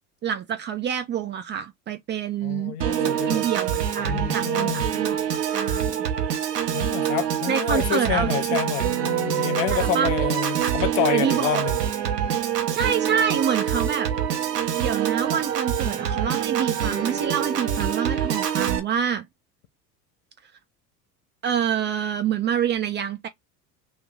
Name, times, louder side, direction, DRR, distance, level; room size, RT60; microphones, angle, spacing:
voice 1, 0.2-2.8 3.0-5.2 5.5-6.0 7.5-8.6 9.7-10.1 10.6-10.7 11.1-11.7 12.7-14.1 14.8-19.3 21.4-23.3, right 8 dB, 25° right, 0.4 m, -27 dB
voice 2, 2.4-3.5 4.0-4.9 6.7-11.8, left 12 dB, 50° left, 0.7 m, -28 dB
Piano / Organ, 2.8-18.8, right 9 dB, 80° right, 1.0 m, -25 dB
3.2 x 2.9 x 3.6 m
figure-of-eight pair, 75°, 47 cm